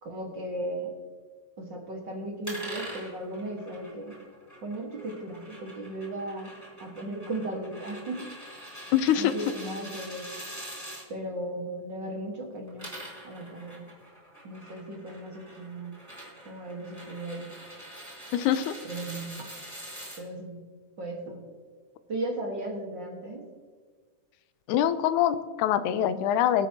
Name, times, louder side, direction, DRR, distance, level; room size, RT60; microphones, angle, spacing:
voice 1, 0.0-0.9 1.6-4.2 4.6-6.5 6.8-8.3 9.1-10.3 11.1-12.9 13.2-14.0 14.4-16.0 16.5-17.6 18.8-19.5 20.2-21.5 22.1-23.5, right 1 dB, 45° right, 1 dB, 2.0 m, -36 dB
sound 1, 2.4-11.0 12.6-20.2, right 1 dB, 5° right, 3.3 m, -44 dB
voice 2, 8.9-9.3 18.3-18.7 24.7-26.7, left 10 dB, 85° left, 13 dB, 2.1 m, -24 dB
24.0 x 8.2 x 2.9 m, 1.5 s
omnidirectional pair, 3.4 m